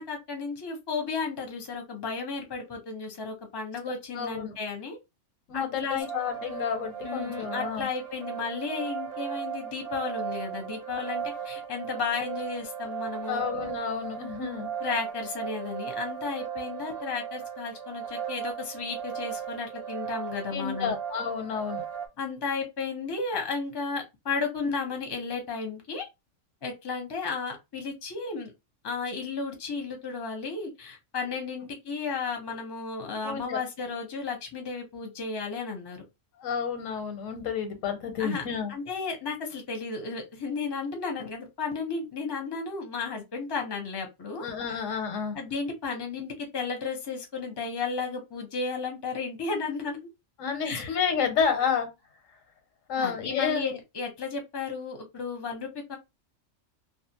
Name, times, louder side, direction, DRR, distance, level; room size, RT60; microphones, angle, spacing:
voice 1, 0.0-5.0 5.5-6.1 7.0-13.4 14.8-20.9 22.2-26.1 26.6-28.5 28.8-36.0 38.2-38.4 38.7-44.8 45.3-50.0 50.6-51.0 53.0-56.0, left 4 dB, 25° left, 0.6 m, -33 dB
voice 2, 4.1-4.5 5.5-5.8 6.1-7.9 13.3-14.7 20.5-21.8 33.2-33.6 36.4-38.7 44.4-45.4 50.4-51.9 52.9-53.6, left 6 dB, 85° left, 1.1 m, -30 dB
sound 1, 6.0-22.1, right 8 dB, 55° right, 0.8 m, -37 dB
2.5 x 2.4 x 2.8 m
omnidirectional pair, 1.3 m